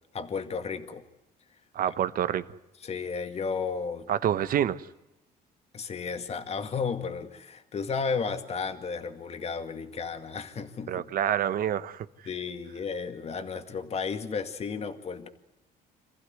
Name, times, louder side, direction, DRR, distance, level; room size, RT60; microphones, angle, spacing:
voice 1, 0.1-1.0 2.8-4.1 5.7-10.9 12.3-15.3, left 5 dB, 40° left, 2.2 m, -33 dB
voice 2, 1.7-2.4 4.1-4.8 10.9-12.1, right 10 dB, 60° right, 1.1 m, -27 dB
27.0 x 15.0 x 9.5 m
cardioid pair, 110°, 17 cm